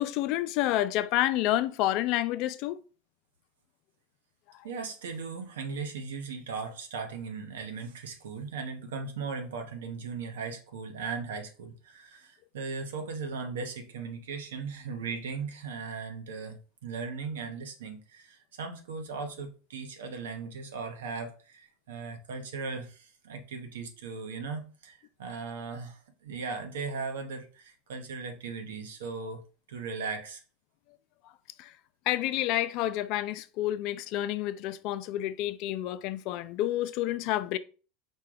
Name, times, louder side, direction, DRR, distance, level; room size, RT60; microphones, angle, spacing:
voice 1, 0.0-2.8 4.5-4.6 31.6-31.7 32.1-37.6, left 14 dB, 55° left, 0.4 m, -29 dB
voice 2, 4.6-29.4 29.7-30.4, right 4 dB, 90° right, 1.0 m, -38 dB
4.5 x 2.3 x 4.8 m
supercardioid pair, 115°, 0 cm